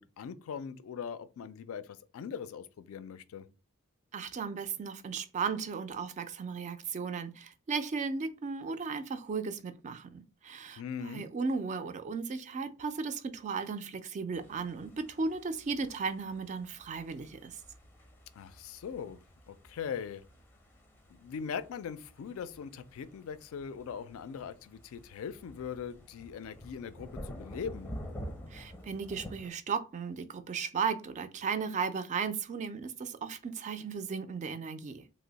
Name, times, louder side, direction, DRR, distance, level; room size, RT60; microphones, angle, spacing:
voice 1, 0.0-3.5 10.8-11.3 18.3-19.2 19.5-20.2 21.1-27.9, left 7 dB, 70° left, 0.3 m, -41 dB
voice 2, 4.1-17.6 28.5-35.0, right 5 dB, 35° right, 0.3 m, -35 dB
sound 1, 14.3-29.5, equal, 10° left, 0.6 m, -49 dB
2.9 x 2.0 x 3.9 m
head